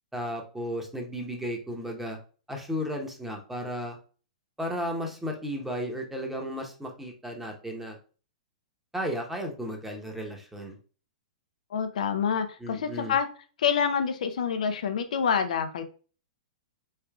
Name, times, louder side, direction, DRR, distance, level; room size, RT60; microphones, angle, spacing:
voice 1, 0.1-2.2 2.5-4.0 4.6-8.0 8.9-10.8 12.6-13.2, equal, 5° right, 2 dB, 0.9 m, -34 dB
voice 2, 11.7-13.3 13.6-15.8, left 7 dB, 65° left, 9 dB, 0.6 m, -27 dB
4.7 x 3.3 x 2.3 m, 0.38 s
hypercardioid pair, 115°, 4 cm